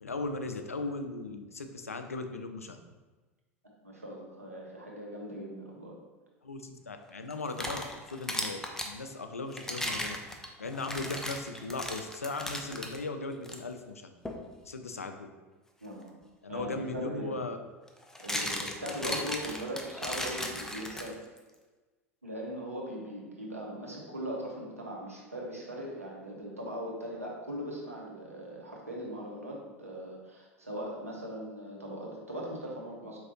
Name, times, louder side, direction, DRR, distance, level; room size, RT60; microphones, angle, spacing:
voice 1, 0.0-2.8 6.4-7.8 8.1-10.2 10.6-14.1 14.6-15.3 16.4-17.6 19.0-19.1, left 3 dB, 85° left, 6 dB, 0.4 m, -37 dB
voice 2, 3.8-5.9 15.8-16.2 16.5-17.4 18.2-21.2 22.2-33.2, equal, 90° right, -3 dB, 1.0 m, -39 dB
sound 1, 7.3-8.9 9.5-13.0 13.4-13.6 14.2-14.5 16.6-16.7 17.9-21.4, left 1 dB, 5° left, 0.5 m, -36 dB
4.7 x 3.5 x 2.9 m, 1.3 s
figure-of-eight pair, 80°, 8 cm